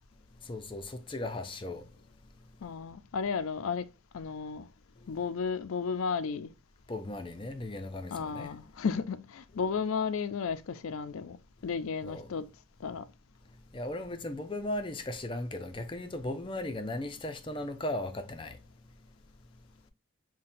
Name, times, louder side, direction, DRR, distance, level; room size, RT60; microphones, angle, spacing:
voice 1, 0.4-1.9 6.9-8.5 12.0-12.3 13.7-18.6, left 1 dB, 25° left, 0.5 m, -37 dB
voice 2, 2.6-3.9 4.1-4.7 5.1-6.5 8.1-11.4 11.6-12.5 12.8-13.1, left 5 dB, 85° left, 0.4 m, -33 dB
5.7 x 2.2 x 2.5 m
head